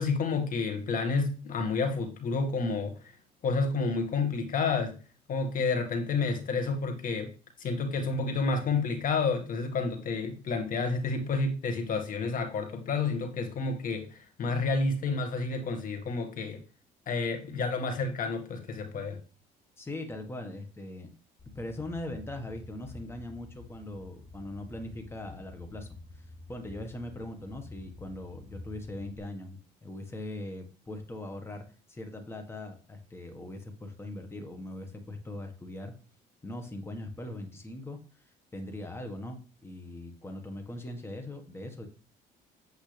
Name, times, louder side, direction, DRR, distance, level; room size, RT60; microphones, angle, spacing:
voice 1, 0.0-2.9 3.4-4.9 5.3-7.3 7.6-16.6 17.1-19.2, left 4 dB, 55° left, 5 dB, 1.9 m, -30 dB
voice 2, 19.8-21.1 21.5-25.9 26.2-31.6 31.9-35.9 36.4-41.9, left 1 dB, 15° left, 5 dB, 1.6 m, -40 dB
sound 1, 21.4-29.2, left 2 dB, 30° left, 5.0 m, -49 dB
8.3 x 8.1 x 3.4 m, 0.36 s
cardioid pair, 110°, 17 cm